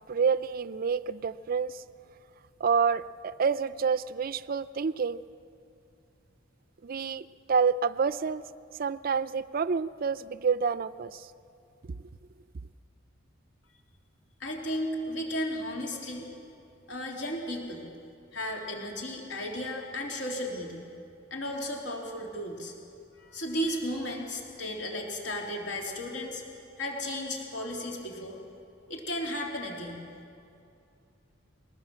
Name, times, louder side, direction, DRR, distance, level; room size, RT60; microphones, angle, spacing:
voice 1, 0.1-1.8 2.6-5.2 6.8-8.4 8.8-11.3 11.9-12.0, right 5 dB, 45° right, 16 dB, 0.5 m, -28 dB
voice 2, 14.4-16.3 16.9-17.8 18.3-20.8 21.3-22.7 23.2-26.4 26.8-28.4 28.9-30.0, left 1 dB, 65° left, 0 dB, 3.2 m, -34 dB
21.5 x 19.5 x 7.6 m, 2.6 s
head